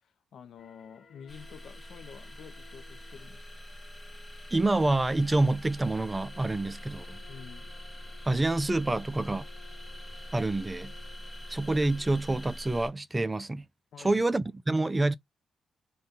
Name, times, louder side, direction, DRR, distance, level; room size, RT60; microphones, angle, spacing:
voice 1, 0.0-3.5 7.3-7.7 13.9-14.2, left 7 dB, 70° left, 0.5 m, -49 dB
sound 1, 0.6-12.1, left 6 dB, 45° left, 1.2 m, -58 dB
sound 2, 1.3-12.9, equal, 5° left, 1.0 m, -44 dB
voice 2, 4.5-7.2 8.2-9.5 10.3-10.9 11.5-13.7 14.0-15.1, right 2 dB, 20° right, 0.3 m, -27 dB
2.6 x 2.2 x 3.6 m
cardioid pair, 85°, 0 cm